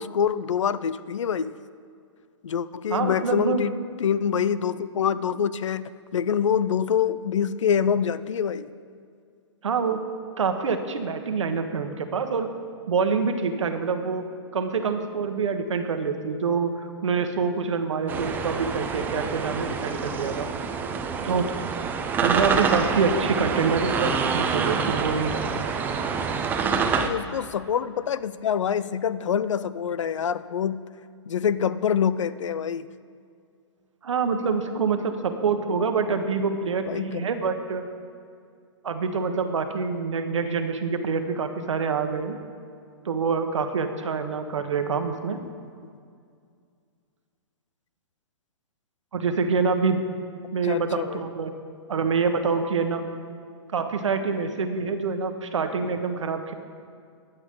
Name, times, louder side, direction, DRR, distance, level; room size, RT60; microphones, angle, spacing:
voice 1, 0.0-1.5 2.4-8.7 26.7-30.8 31.3-32.9 36.8-37.3 45.4-45.5 50.6-51.2, left 8 dB, 90° left, 16 dB, 0.5 m, -26 dB
voice 2, 2.9-3.6 9.6-10.0 10.4-12.5 12.9-14.3 14.5-20.5 21.2-21.6 22.2-25.6 34.0-37.8 38.8-42.4 43.0-45.4 49.1-50.0 50.5-51.5 51.9-53.0 53.7-56.5, right 5 dB, 90° right, 6 dB, 1.3 m, -26 dB
sound 1, 18.1-27.1, right 5 dB, 10° right, 0.5 m, -27 dB
21.5 x 8.1 x 3.8 m, 2.3 s
hypercardioid pair, 150°, 15 cm